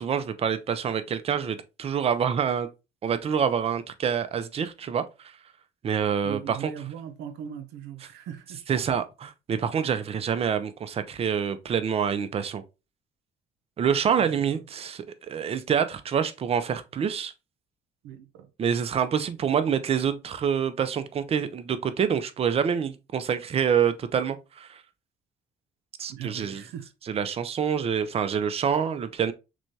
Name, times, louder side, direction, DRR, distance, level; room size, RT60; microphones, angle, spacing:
voice 1, 0.0-2.7 3.0-5.0 5.8-6.7 8.7-12.6 13.8-17.3 18.6-24.8 26.0-26.6 27.1-29.3, right 7 dB, 35° right, 0.5 m, -26 dB
voice 2, 6.2-8.8 14.2-14.6 18.0-18.5 26.1-26.9, right 9 dB, 90° right, 0.6 m, -40 dB
6.0 x 2.3 x 2.7 m
cardioid pair, 110°, 17 cm